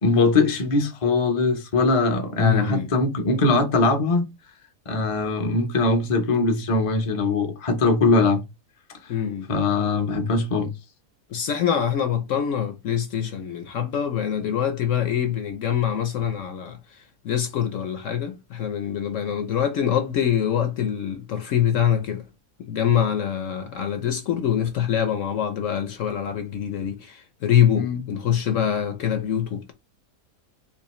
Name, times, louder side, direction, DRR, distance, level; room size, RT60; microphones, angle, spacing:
voice 1, 0.0-4.3 4.9-8.4 9.5-10.7 27.8-28.0, left 3 dB, 35° left, 0.5 m, -21 dB
voice 2, 2.4-2.9 9.1-9.5 11.3-16.8 17.2-22.2 22.6-29.7, left 9 dB, 65° left, 0.9 m, -24 dB
3.7 x 2.8 x 3.0 m
omnidirectional pair, 1.7 m